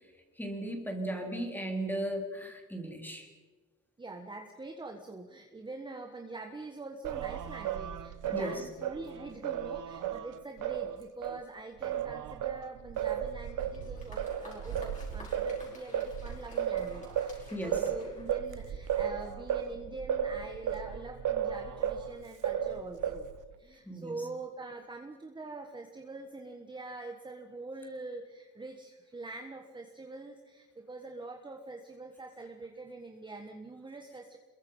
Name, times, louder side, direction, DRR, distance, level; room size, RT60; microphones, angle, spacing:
voice 1, 0.4-3.3 8.3-8.5 17.5-17.8 23.9-24.2, right 1 dB, 5° left, 2 dB, 3.7 m, -36 dB
voice 2, 4.0-23.3 23.6-34.4, right 3 dB, 15° right, 3 dB, 1.6 m, -44 dB
Singing, 7.0-11.4 11.8-22.1 22.4-23.4, right 9 dB, 80° right, 1.3 m, -34 dB
Applause, 13.5-19.0, left 2 dB, 25° left, 5.8 m, -54 dB
28.0 x 22.5 x 5.6 m, 1.4 s
cardioid pair, 165°, 31 cm